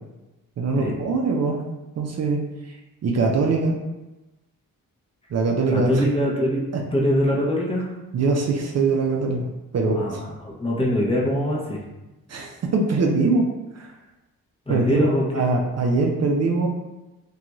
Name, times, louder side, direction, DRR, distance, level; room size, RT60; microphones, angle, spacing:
voice 1, 0.6-1.6 2.0-2.8 3.0-3.8 5.3-6.0 8.1-9.5 9.7-10.2 12.3-13.5 13.8-13.9 14.7-16.7, right 3 dB, 50° right, 0 dB, 0.4 m, -22 dB
voice 2, 5.7-6.6 6.9-7.9 9.9-11.8 14.7-15.5, equal, 15° left, -3 dB, 0.6 m, -23 dB
2.4 x 2.3 x 2.9 m, 1.0 s
cardioid pair, 70°, 35 cm